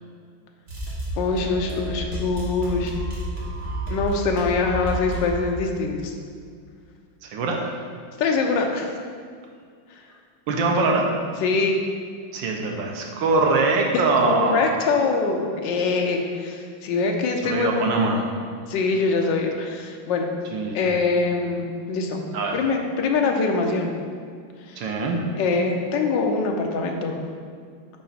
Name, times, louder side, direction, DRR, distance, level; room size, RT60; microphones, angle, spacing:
sound 1, 0.7-5.5, right 1 dB, 45° right, 1.4 m, -31 dB
voice 1, 1.2-2.9 3.9-6.1 8.2-8.9 11.4-11.8 13.9-17.9 18.7-20.3 20.7-22.2 22.5-23.9 24.7-24.9 25.4-27.2, left 4 dB, 75° left, 2 dB, 1.3 m, -24 dB
voice 2, 7.2-7.7 10.5-11.1 12.3-14.8 17.4-18.2 20.5-20.9 22.3-22.6 24.8-25.2, right 3 dB, 75° right, 1 dB, 1.3 m, -23 dB
5.7 x 5.0 x 4.0 m, 2.1 s
omnidirectional pair, 2.1 m